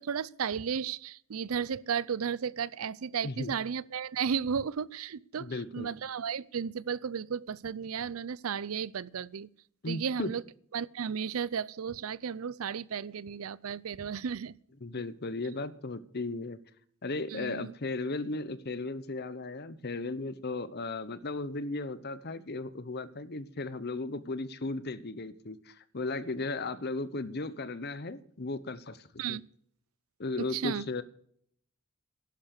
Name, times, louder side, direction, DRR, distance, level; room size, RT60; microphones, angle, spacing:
voice 1, 0.0-9.5 9.9-10.4 10.7-14.5 17.3-17.7 29.2-29.4 30.5-30.8, right 7 dB, 80° right, 0.5 m, -34 dB
voice 2, 5.3-5.9 9.8-10.3 14.8-16.6 17.0-29.4 30.2-31.0, left 3 dB, 50° left, 0.9 m, -36 dB
11.5 x 10.5 x 6.7 m
head